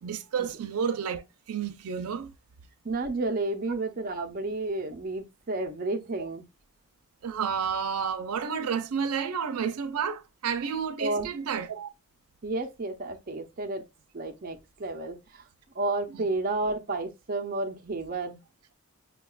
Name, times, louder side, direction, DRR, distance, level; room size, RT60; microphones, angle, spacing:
voice 1, 0.0-2.3 7.2-11.9 16.1-16.3, right 7 dB, 90° right, 0.4 m, -31 dB
voice 2, 2.8-6.4 11.0-11.3 12.4-13.9 14.1-15.4 15.7-18.4, right 2 dB, 40° right, 0.5 m, -31 dB
5.5 x 2.3 x 2.2 m
head